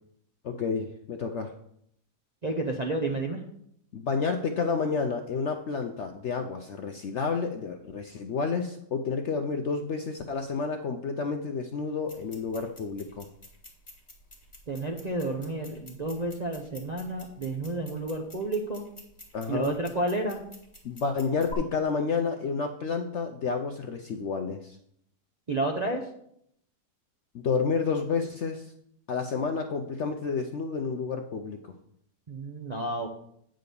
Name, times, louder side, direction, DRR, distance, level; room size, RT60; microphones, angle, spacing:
voice 1, 0.4-1.5 3.9-13.3 19.3-19.8 20.8-24.8 27.3-28.7 29.1-31.7, left 5 dB, 65° left, 5 dB, 0.7 m, -30 dB
voice 2, 2.4-3.4 14.7-18.9 19.5-20.4 25.5-26.0 32.3-33.1, right 2 dB, 40° right, 0 dB, 0.6 m, -31 dB
sound 1, 12.0-21.5, left 2 dB, 20° left, 1.6 m, -50 dB
9.4 x 3.8 x 6.8 m, 0.72 s
omnidirectional pair, 1.7 m